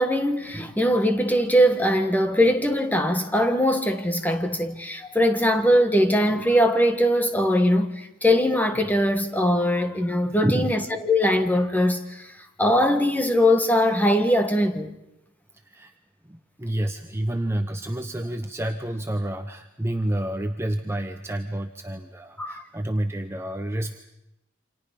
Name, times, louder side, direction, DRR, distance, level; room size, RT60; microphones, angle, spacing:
voice 1, 0.0-14.9 22.4-22.6, equal, 10° left, 1.6 m, -21 dB
voice 2, 10.4-10.7 15.5-15.9 16.2-24.0, right 1 dB, 15° right, 0.8 m, -29 dB
28.5 x 26.0 x 5.3 m
head